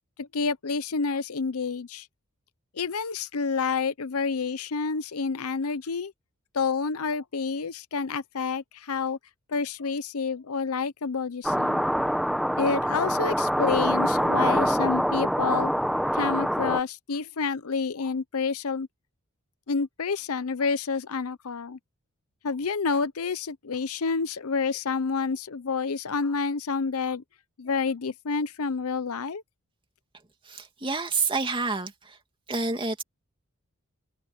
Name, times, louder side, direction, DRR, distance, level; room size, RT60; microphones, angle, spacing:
voice 1, 0.2-2.1 2.7-6.1 6.5-9.2 9.5-11.8 12.6-15.7 16.1-18.9 19.7-21.8 22.4-27.2 27.6-29.4, left 5 dB, 85° left, 0.8 m, -29 dB
sound 1, 11.4-16.8, equal, ahead, 1.0 m, -25 dB
voice 2, 30.4-32.2 32.5-33.0, right 4 dB, 25° right, 2.6 m, -28 dB
head